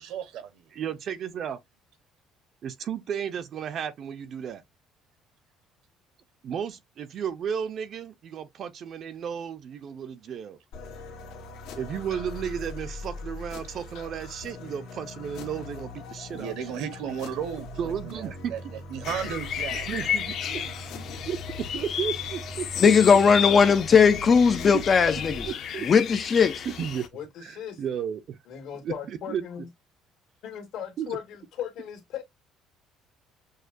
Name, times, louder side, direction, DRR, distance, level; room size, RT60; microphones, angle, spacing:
voice 1, 0.0-0.7 16.3-20.0 20.5-20.7 25.0-25.5, right 8 dB, 75° right, 0.9 m, -36 dB
voice 2, 0.7-1.6 2.6-4.6 6.4-10.6 11.8-16.5 17.8-18.5 19.7-20.4 21.3-22.6 24.7-24.8 25.5-25.9 26.6-27.1 27.4-28.4 28.8-29.4 31.0-31.2, right 8 dB, 45° right, 0.5 m, -33 dB
sound 1, 10.7-25.5, left 1 dB, 85° left, 1.5 m, -41 dB
sound 2, 19.0-27.1, left 9 dB, 55° left, 0.7 m, -33 dB
voice 3, 22.8-25.4 25.9-26.6, left 6 dB, 30° left, 0.3 m, -18 dB
voice 4, 27.1-27.8 28.5-29.7 30.4-32.2, left 9 dB, 70° left, 1.7 m, -37 dB
6.4 x 2.2 x 2.6 m
cardioid pair, 150°, 0 cm